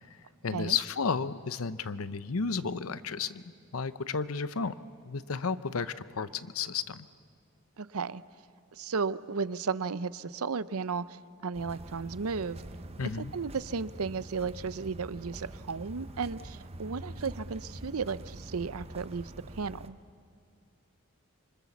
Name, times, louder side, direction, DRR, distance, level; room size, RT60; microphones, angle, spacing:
voice 1, 0.4-3.4 3.7-4.8 5.0-7.1 13.0-13.3, left 5 dB, 70° left, 14 dB, 0.8 m, -32 dB
voice 2, 7.8-8.2 8.8-12.6 13.2-19.9, right 5 dB, 80° right, 16 dB, 0.7 m, -34 dB
sound 1, 11.5-19.9, right 1 dB, 30° right, 0.9 m, -45 dB
27.0 x 25.0 x 7.2 m, 2.3 s
head